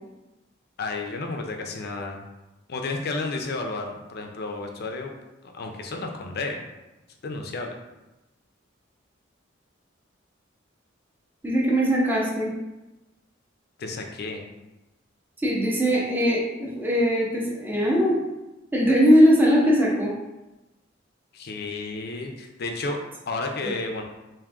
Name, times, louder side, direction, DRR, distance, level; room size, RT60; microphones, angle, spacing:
voice 1, 0.8-2.2 2.7-5.1 5.4-6.7 7.2-7.7 13.8-14.4 21.3-23.0 23.3-24.0, left 3 dB, 55° left, 3 dB, 0.5 m, -32 dB
voice 2, 11.4-12.5 15.4-18.2 18.7-20.1 23.6-23.7, equal, 10° right, -5 dB, 0.8 m, -20 dB
3.7 x 2.6 x 3.5 m, 1.0 s
head